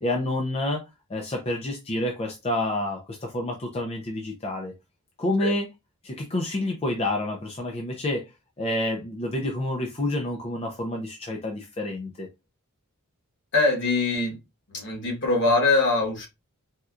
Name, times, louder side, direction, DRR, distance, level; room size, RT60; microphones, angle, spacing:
voice 1, 0.0-0.8 1.1-4.7 5.2-5.7 6.0-8.3 8.6-12.3, left 1 dB, 25° left, 0.5 m, -28 dB
voice 2, 13.5-14.4 14.7-16.3, left 3 dB, 55° left, 1.2 m, -23 dB
4.1 x 2.3 x 2.4 m
head